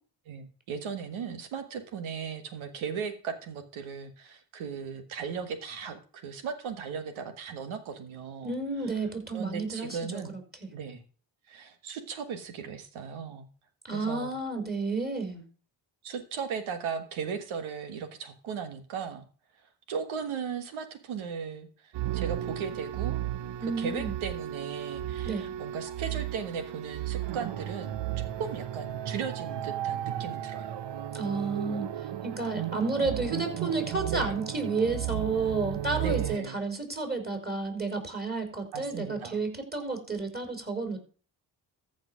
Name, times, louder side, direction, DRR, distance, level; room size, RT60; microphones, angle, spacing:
voice 1, 0.3-8.5 9.3-10.3 10.7-11.0 11.5-13.5 13.9-14.3 16.0-19.3 19.9-23.2 23.6-28.0 28.4-30.8 34.1-34.4 36.0-36.6 38.7-39.4, right 6 dB, 90° right, 8 dB, 1.6 m, -37 dB
voice 2, 8.4-10.7 13.9-15.4 23.6-24.1 25.2-25.5 31.1-31.9 32.2-41.0, right 3 dB, 20° right, 4 dB, 4.9 m, -31 dB
sound 1, 21.9-36.4, right 12 dB, 65° right, 0.8 m, -34 dB
14.0 x 5.2 x 6.2 m, 0.41 s
supercardioid pair, 50°, 47 cm